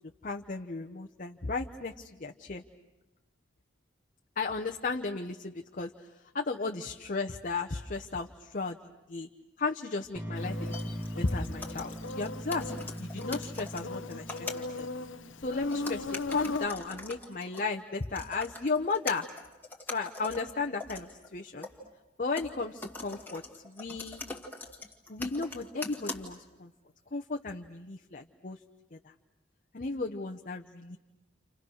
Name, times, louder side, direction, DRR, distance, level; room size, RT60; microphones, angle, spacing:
voice 1, 0.2-2.6 4.4-5.3 5.8-5.9 6.3-8.8 9.1-9.3 9.6-14.9 15.4-19.3 19.9-21.7 22.2-24.2 25.1-26.7 27.1-28.6 28.9-29.1 29.7-31.0, left 3 dB, 45° left, 4 dB, 0.9 m, -35 dB
sound 1, 10.1-16.2, equal, 15° right, 1.5 m, -41 dB
Insect, 10.4-16.7, left 3 dB, 85° left, 0.9 m, -38 dB
sound 2, 10.6-14.8 15.7-21.9 22.4-26.6 27.5-27.6, left 3 dB, 10° left, 2.1 m, -43 dB
30.0 x 27.5 x 6.4 m, 1.0 s
head